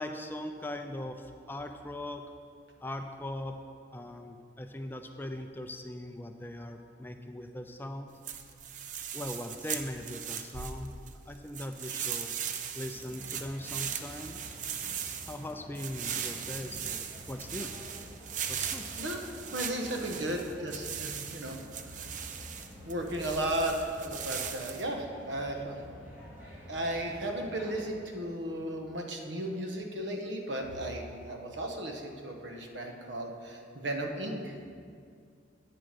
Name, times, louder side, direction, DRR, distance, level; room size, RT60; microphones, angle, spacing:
voice 1, 0.0-2.2 2.8-3.6 3.9-8.1 9.1-10.9 11.3-12.3 12.7-14.4 15.2-17.8 18.5-18.8, left 1 dB, 10° left, 6 dB, 0.4 m, -40 dB
sound 1, 8.2-11.1 11.5-24.8, right 8 dB, 40° right, 0.5 m, -39 dB
sound 2, 12.9-27.9, equal, 10° right, 2.2 m, -50 dB
voice 2, 19.5-21.6 22.8-25.9 26.7-34.5, right 1 dB, 75° right, 3 dB, 1.1 m, -35 dB
8.9 x 7.3 x 5.1 m, 2.3 s
head